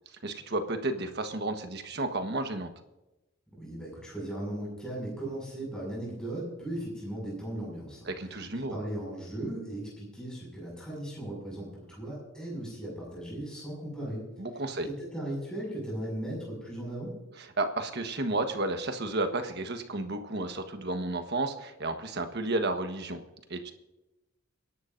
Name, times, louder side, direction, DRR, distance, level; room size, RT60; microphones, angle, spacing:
voice 1, 0.2-2.7 8.1-8.8 14.4-14.9 17.4-23.2 23.5-23.7, right 2 dB, 50° right, 6 dB, 1.3 m, -32 dB
voice 2, 3.6-8.1 8.7-14.3 14.8-17.2, right 1 dB, 5° left, -4 dB, 6.2 m, -37 dB
29.5 x 11.5 x 2.6 m, 0.98 s
head